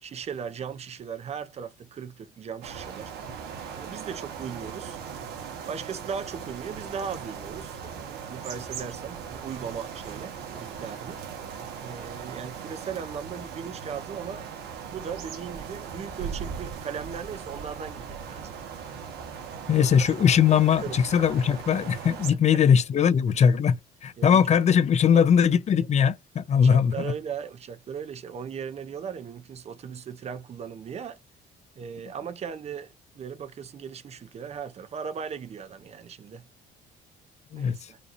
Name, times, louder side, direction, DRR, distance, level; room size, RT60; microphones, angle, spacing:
voice 1, 0.0-3.1 3.7-5.0 5.7-11.2 11.8-14.5 14.9-18.5 19.7-19.9 20.8-21.0 22.5-22.6 24.2-24.4 25.1-25.2 26.6-31.2 31.8-36.4 37.5-38.0, right 7 dB, 40° right, 0.6 m, -38 dB
sound 1, 2.6-22.3, right 7 dB, 75° right, 1.5 m, -39 dB
voice 2, 19.7-27.1 37.5-37.9, left 7 dB, 40° left, 0.6 m, -21 dB
5.0 x 2.9 x 2.5 m
cardioid pair, 110°, 17 cm